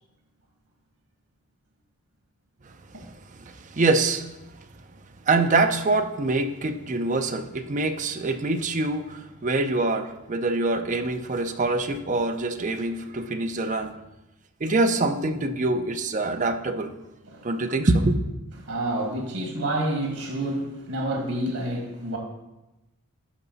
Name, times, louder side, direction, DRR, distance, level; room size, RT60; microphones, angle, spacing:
voice 1, 3.4-4.3 4.6-4.7 5.3-13.9 14.6-16.9 17.4-18.2, right 2 dB, 35° right, 7 dB, 0.5 m, -25 dB
voice 2, 17.2-17.6 18.6-22.2, right 1 dB, 85° right, 1 dB, 1.8 m, -29 dB
11.0 x 5.0 x 4.0 m, 0.99 s
head